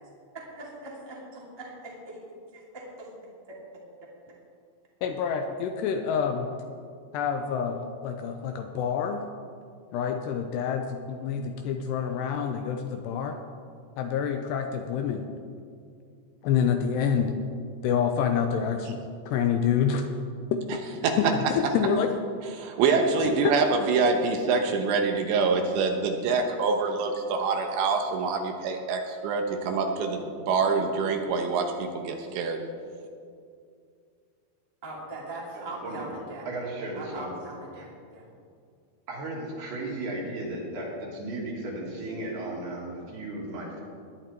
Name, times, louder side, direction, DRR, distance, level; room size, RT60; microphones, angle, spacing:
voice 1, 0.3-2.2 2.5-3.8 34.8-36.5 36.9-38.3, right 2 dB, 10° right, -4 dB, 1.6 m, -41 dB
voice 2, 5.0-6.5 7.1-9.2 9.9-13.4 14.0-15.3 16.4-17.4 17.8-19.0 19.3-20.0 20.5-20.6 21.2-22.1 23.2-23.5, left 7 dB, 80° left, 5 dB, 2.6 m, -27 dB
voice 3, 22.6-32.6, right 4 dB, 75° right, 4 dB, 3.2 m, -25 dB
voice 4, 35.6-36.1 36.5-37.3 37.8-37.9 39.1-43.8, right 2 dB, 60° right, -3 dB, 4.4 m, -35 dB
19.5 x 11.0 x 4.5 m, 2.3 s
omnidirectional pair, 5.3 m